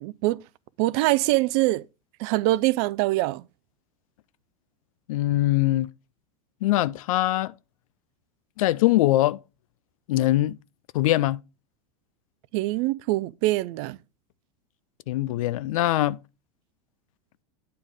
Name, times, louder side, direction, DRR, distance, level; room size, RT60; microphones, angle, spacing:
voice 1, 0.0-0.4 0.8-1.8 2.2-3.4 12.5-14.0, right 18 dB, 50° right, 0.4 m, -24 dB
voice 2, 5.1-5.9 6.6-7.5 8.6-9.4 10.1-10.6 10.9-11.4 15.1-16.2, left 15 dB, 65° left, 0.4 m, -22 dB
9.0 x 3.4 x 4.8 m
hypercardioid pair, 90°, 19 cm